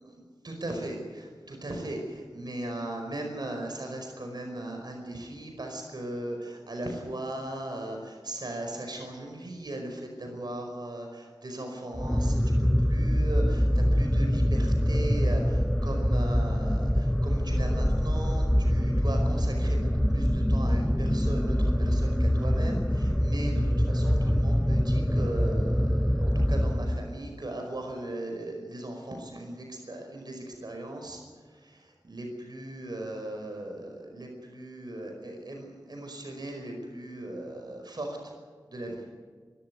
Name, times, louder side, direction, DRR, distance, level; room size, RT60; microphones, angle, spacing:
voice 1, 0.0-31.2 31.5-38.3 38.7-39.0, right 1 dB, 65° right, 2 dB, 5.1 m, -38 dB
sound 1, 11.9-27.3, equal, 5° left, 0.6 m, -25 dB
24.5 x 13.5 x 9.5 m, 1.5 s
wide cardioid pair, 55°, 8 cm